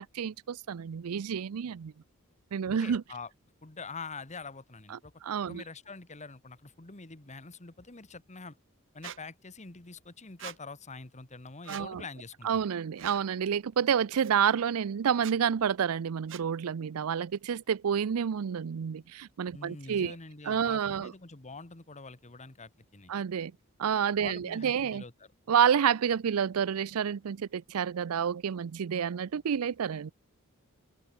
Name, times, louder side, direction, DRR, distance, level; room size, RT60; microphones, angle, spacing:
voice 1, 0.0-1.9 2.5-3.0 4.9-5.6 11.7-12.0 12.4-20.2 20.4-21.1 23.1-23.5 23.8-25.0 25.5-30.1, right 8 dB, 85° right, 0.5 m, -29 dB
voice 2, 2.8-3.3 3.6-5.1 5.4-8.6 8.9-12.6 19.5-23.1 24.2-25.1, left 4 dB, 35° left, 1.6 m, -45 dB
Squeak, 9.0-9.2 10.4-10.6 11.6-11.9 13.0-13.2 14.2-14.3 15.1-15.4 16.3-16.5, right 10 dB, 65° right, 1.2 m, -43 dB
open air
head